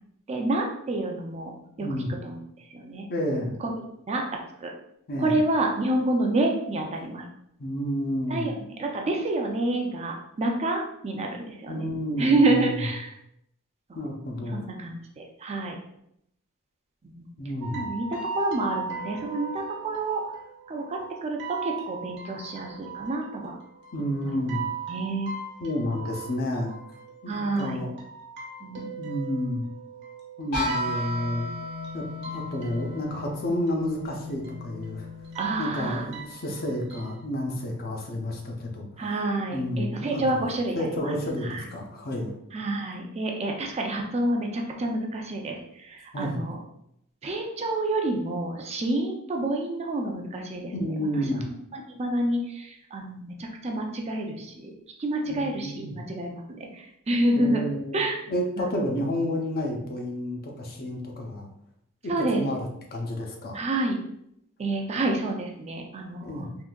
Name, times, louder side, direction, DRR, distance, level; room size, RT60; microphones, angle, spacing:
voice 1, 0.3-1.9 2.2-3.1 3.6-3.7 4.1-4.7 5.2-7.2 8.3-11.9 12.2-13.1 13.9-14.0 14.5-15.8 17.0-17.3 17.7-20.2 20.7-23.6 24.2-24.5 24.9-25.3 27.3-27.8 28.6-29.0 35.4-36.1 39.0-41.1 41.4-41.6 42.5-46.6 47.2-51.0 51.3-51.4 51.7-54.7 55.0-57.6 57.9-58.2 58.6-58.7 62.1-62.5 63.5-64.0 64.6-66.4, right 2 dB, 30° right, 1 dB, 0.4 m, -28 dB
voice 2, 1.8-2.1 3.1-3.5 5.1-5.4 7.6-8.5 11.7-12.8 13.9-14.6 17.4-17.9 23.9-24.7 25.6-26.7 27.2-27.9 29.0-29.6 30.4-31.5 31.9-35.1 35.6-38.9 39.5-40.2 40.7-42.4 46.1-46.4 50.8-51.5 55.2-56.0 57.4-58.0 58.3-61.5 62.0-63.6 66.2-66.5, left 1 dB, 45° left, 1 dB, 0.6 m, -30 dB
sound 1, 17.6-37.2, right 6 dB, 55° right, 0.9 m, -39 dB
sound 2, 30.5-36.3, left 2 dB, 80° left, 1.5 m, -35 dB
3.6 x 2.6 x 2.2 m, 0.75 s
head